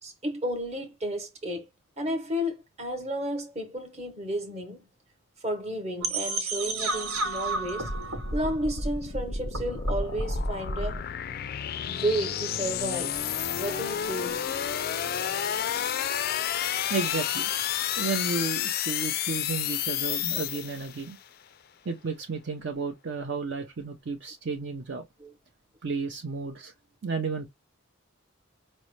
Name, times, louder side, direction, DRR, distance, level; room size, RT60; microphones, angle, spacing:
voice 1, 0.0-1.7 2.0-4.8 5.4-8.0 8.3-11.0 11.9-13.2 13.6-14.4 25.2-25.3, equal, 30° right, 1.0 m, -32 dB
sound 1, 6.0-11.0, right 2 dB, 90° right, 1.1 m, -31 dB
sound 2, 6.6-21.1, left 10 dB, 45° left, 0.3 m, -31 dB
voice 2, 16.9-17.5 18.0-21.2 21.9-25.0 25.8-26.7 27.0-27.5, right 4 dB, 55° right, 0.5 m, -32 dB
5.2 x 2.1 x 3.0 m
head